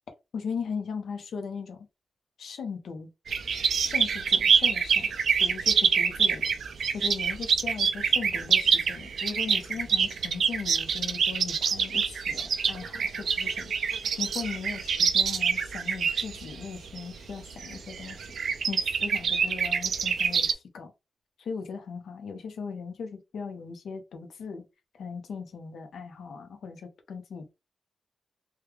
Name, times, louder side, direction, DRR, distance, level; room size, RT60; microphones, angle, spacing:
voice 1, 0.3-1.9 2.4-3.1 3.8-5.1 5.4-6.4 6.9-18.4 18.7-20.9 21.4-24.6 24.9-27.5, left 5 dB, 80° left, 0.8 m, -38 dB
sound 1, 3.3-20.5, right 6 dB, 70° right, 0.4 m, -26 dB
3.2 x 2.3 x 3.4 m
wide cardioid pair, 150°, 0 cm